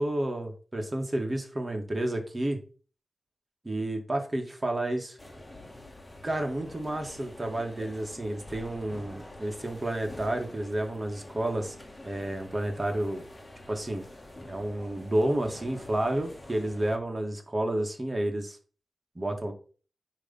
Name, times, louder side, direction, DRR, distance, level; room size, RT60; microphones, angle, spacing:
voice 1, 0.0-2.6 3.6-5.2 6.2-11.8 12.0-13.2 13.7-14.1 14.5-18.6 19.2-19.5, right 1 dB, 25° right, 3 dB, 2.0 m, -30 dB
sound 1, 5.2-17.0, left 1 dB, 25° left, 1.8 m, -47 dB
9.8 x 3.4 x 5.6 m, 0.39 s
wide cardioid pair, 75°, 0 cm